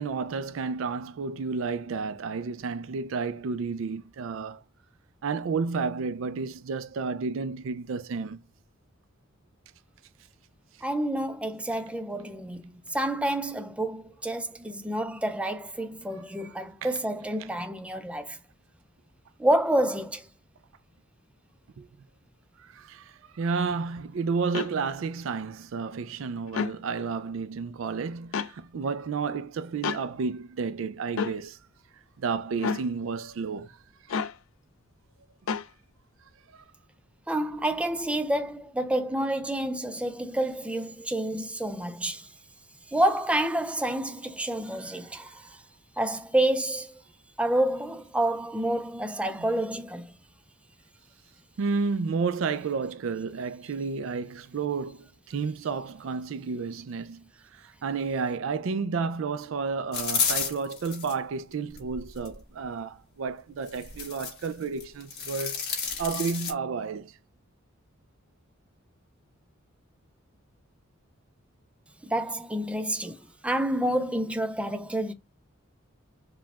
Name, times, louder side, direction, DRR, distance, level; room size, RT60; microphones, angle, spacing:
voice 1, 0.0-4.6 5.2-8.4 16.8-16.9 21.8-21.9 22.6-31.6 32.2-33.7 36.5-36.6 49.3-49.5 51.6-57.2 57.5-65.6 66.0-67.1, right 5 dB, 70° right, 0.4 m, -31 dB
voice 2, 10.8-12.6 12.9-18.4 19.4-20.3 37.3-42.3 42.9-45.4 46.0-47.0 47.4-50.1 72.0-73.2 73.4-75.1, right 1 dB, 5° right, 0.5 m, -28 dB
sound 1, 24.5-24.7 26.5-26.8 28.3-28.5 29.8-30.0 31.2-31.4 32.6-32.9 34.1-34.4 35.5-35.7, left 5 dB, 75° left, 0.4 m, -29 dB
sound 2, 59.9-61.1 61.7-62.3 63.7-64.5 64.8-66.5, left 6 dB, 50° left, 1.8 m, -31 dB
4.9 x 2.3 x 3.3 m
head